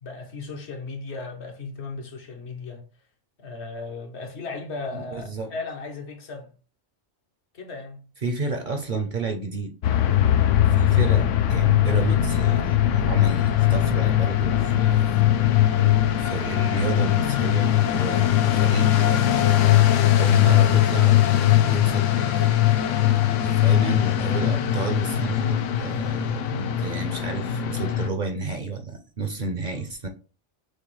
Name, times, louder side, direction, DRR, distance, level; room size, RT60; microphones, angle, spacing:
voice 1, 0.0-2.9 3.4-6.5 7.5-8.1, left 3 dB, 65° left, 1.1 m, -36 dB
voice 2, 4.9-5.5 8.2-9.7 10.6-15.1 16.2-19.5 19.7-22.6 23.4-30.1, right 4 dB, 50° right, 0.7 m, -31 dB
sound 1, 9.8-28.1, left 12 dB, 85° left, 0.9 m, -20 dB
6.5 x 2.3 x 3.1 m
omnidirectional pair, 1.2 m